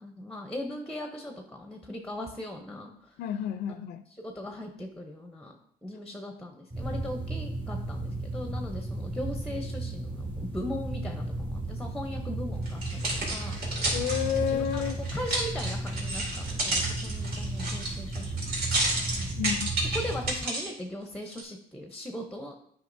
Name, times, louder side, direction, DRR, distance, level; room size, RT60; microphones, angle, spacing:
voice 1, 0.0-3.2 4.2-5.6 5.8-13.0 13.3-13.9 14.4-18.5 18.8-18.9 19.2-19.4 19.9-22.6, left 1 dB, 5° left, 4 dB, 0.7 m, -39 dB
voice 2, 3.2-4.0 13.9-15.0 19.4-19.7, left 9 dB, 75° left, 10 dB, 0.4 m, -30 dB
sound 1, 6.7-20.4, right 2 dB, 30° right, 1.9 m, -34 dB
sound 2, 12.7-20.7 21.3-21.4, right 2 dB, 70° right, 2.5 m, -31 dB
9.1 x 5.2 x 2.6 m, 0.69 s
cardioid pair, 110°, 17 cm